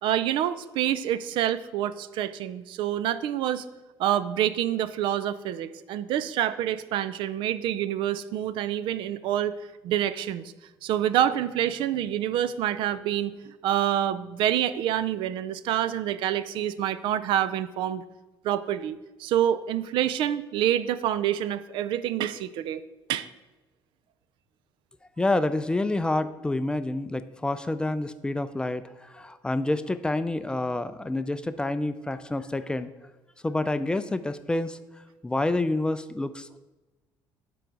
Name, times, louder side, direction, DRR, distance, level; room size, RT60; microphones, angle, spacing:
voice 1, 0.0-3.6 4.0-9.5 9.8-10.5 10.8-13.3 13.6-18.0 18.4-22.8 23.1-23.3, right 11 dB, 75° right, 15 dB, 0.4 m, -27 dB
voice 2, 25.2-32.9 33.4-34.8 35.2-36.6, left 2 dB, 10° left, 12 dB, 0.3 m, -28 dB
9.9 x 3.9 x 4.6 m, 1.1 s
cardioid pair, 115°, 9 cm